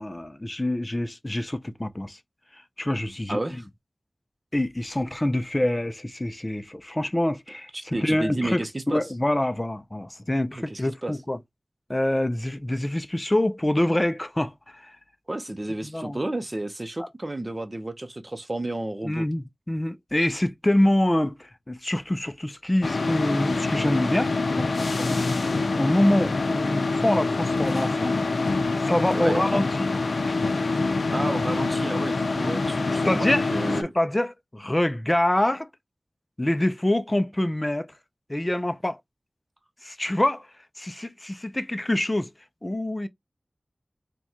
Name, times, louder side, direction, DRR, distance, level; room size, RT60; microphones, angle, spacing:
voice 1, 0.0-2.2 2.8-3.4 4.5-11.4 11.9-15.0 15.8-16.2 19.0-25.3 25.8-28.1 28.9-29.9 32.4-32.5 32.9-33.5 33.8-35.7 36.4-37.9 38.3-39.0 39.8-40.5 40.8-42.3 42.6-43.1, left 1 dB, 25° left, 0.4 m, -26 dB
voice 2, 3.3-3.7 7.7-9.0 10.5-11.2 15.3-19.3 29.1-29.5 31.1-33.9, right 1 dB, 35° right, 0.7 m, -31 dB
sound 1, 22.8-33.8, left 3 dB, 85° left, 0.4 m, -25 dB
4.5 x 2.2 x 2.8 m
wide cardioid pair, 70°, 0 cm